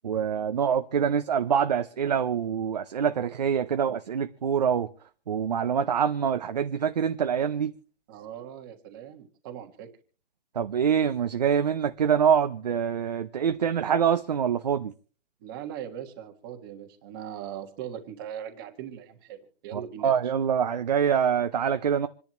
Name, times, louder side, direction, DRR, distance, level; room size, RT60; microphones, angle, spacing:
voice 1, 0.0-4.9 5.3-7.7 10.5-14.9 19.7-22.1, right 7 dB, 35° right, 0.6 m, -25 dB
voice 2, 8.1-9.9 15.4-20.3, right 10 dB, 20° right, 1.5 m, -40 dB
27.0 x 10.5 x 3.0 m
hypercardioid pair, 175°, 35 cm